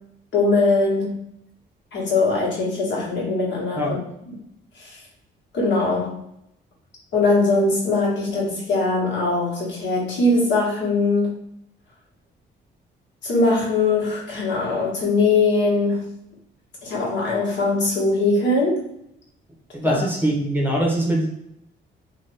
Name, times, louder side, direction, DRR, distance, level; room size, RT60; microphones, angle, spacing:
voice 1, 0.3-1.3 1.9-4.0 4.7-5.0 5.5-6.2 7.1-11.3 13.2-16.2 16.8-18.9 19.8-20.0, left 3 dB, 65° left, -4 dB, 1.3 m, -21 dB
voice 2, 19.7-21.3, right 1 dB, 10° right, -2 dB, 0.8 m, -22 dB
2.8 x 2.3 x 3.3 m, 0.76 s
cardioid pair, 90°, 20 cm